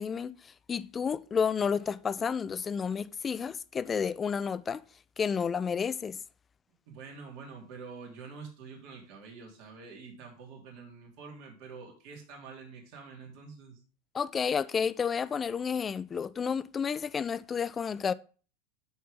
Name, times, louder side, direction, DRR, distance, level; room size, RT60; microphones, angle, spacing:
voice 1, 0.0-4.8 5.2-6.2 14.1-18.1, left 6 dB, 25° left, 0.5 m, -31 dB
voice 2, 6.9-13.8, right 5 dB, 55° right, 3.8 m, -47 dB
12.0 x 4.7 x 3.7 m
hypercardioid pair, 90°, 0 cm